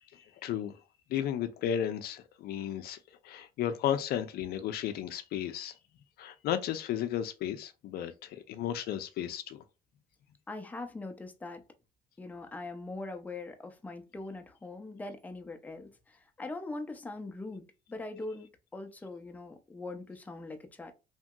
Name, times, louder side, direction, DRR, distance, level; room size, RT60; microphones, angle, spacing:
voice 1, 0.1-0.8 1.1-3.0 3.2-5.7 6.2-9.6, left 10 dB, 65° left, 0.4 m, -34 dB
voice 2, 10.5-11.6 12.2-20.9, left 2 dB, 10° left, 0.5 m, -42 dB
2.8 x 2.6 x 2.2 m
cardioid pair, 110°, 17 cm